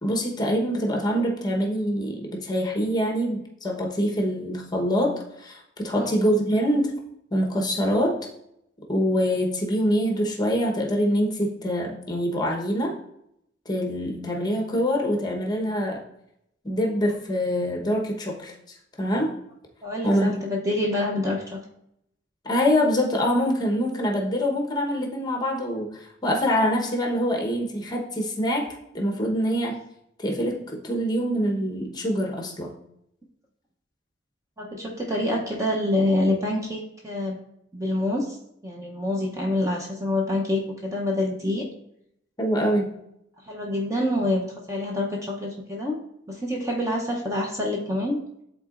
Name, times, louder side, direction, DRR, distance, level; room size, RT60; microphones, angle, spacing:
voice 1, 0.0-6.9 7.3-8.2 8.9-12.9 13.6-16.1 16.6-19.3 20.0-20.5 22.4-29.8 30.2-32.7 42.4-43.0, equal, 20° left, 0 dB, 1.0 m, -25 dB
voice 2, 19.8-21.6 34.6-37.4 37.7-38.4 38.6-41.7 43.5-44.4 44.7-46.0 46.3-48.2, left 1 dB, 15° right, -1 dB, 0.7 m, -26 dB
11.0 x 3.9 x 2.5 m, 0.77 s
head